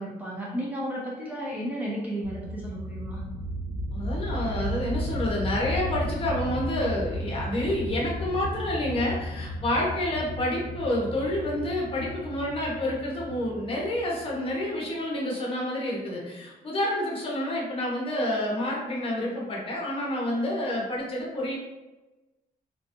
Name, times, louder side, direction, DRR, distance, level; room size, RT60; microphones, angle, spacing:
voice 1, 0.0-3.2, equal, 10° right, -5 dB, 0.5 m, -33 dB
sound 1, 2.2-14.6, equal, 65° left, 0.5 m, -34 dB
voice 2, 3.9-21.5, left 1 dB, 35° left, -2 dB, 0.9 m, -29 dB
3.4 x 2.9 x 2.6 m, 1.1 s
cardioid pair, 155°, 16 cm